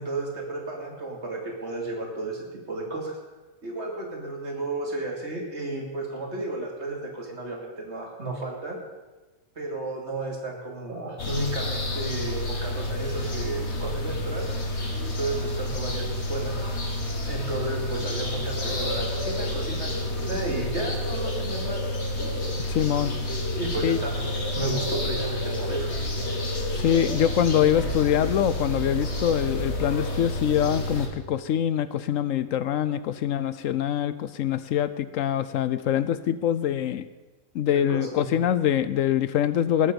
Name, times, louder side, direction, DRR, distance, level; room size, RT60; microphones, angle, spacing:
voice 1, 0.0-3.2 3.6-8.8 9.6-14.5 15.0-16.5 17.3-21.8 23.5-25.9 37.7-38.3, right 2 dB, 50° right, 0 dB, 2.9 m, -33 dB
sound 1, 11.2-31.1, left 1 dB, 55° left, 2.0 m, -29 dB
voice 2, 22.7-23.2 23.8-24.0 26.8-37.1 37.5-39.9, left 10 dB, 75° left, 14 dB, 1.0 m, -24 dB
19.0 x 8.7 x 5.2 m, 1.2 s
omnidirectional pair, 1.4 m